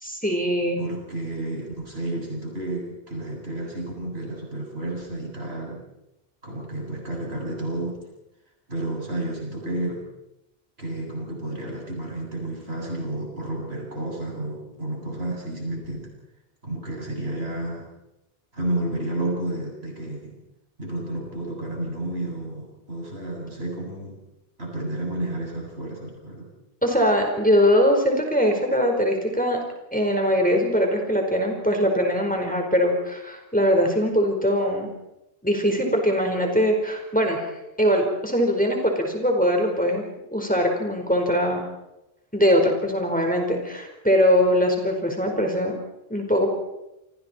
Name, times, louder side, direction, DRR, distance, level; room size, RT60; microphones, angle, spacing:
voice 1, 0.0-0.8 26.8-29.6 29.9-34.9 35.4-37.5 37.8-40.0 40.3-41.6 42.3-45.7 46.1-46.5, equal, 10° left, 2 dB, 4.7 m, -21 dB
voice 2, 0.8-5.8 6.4-8.0 8.7-10.0 10.8-16.1 16.6-17.9 18.5-20.4 20.8-24.2 24.6-26.5, right 1 dB, 85° right, -1 dB, 8.4 m, -31 dB
29.5 x 25.5 x 4.5 m, 0.90 s
omnidirectional pair, 1.0 m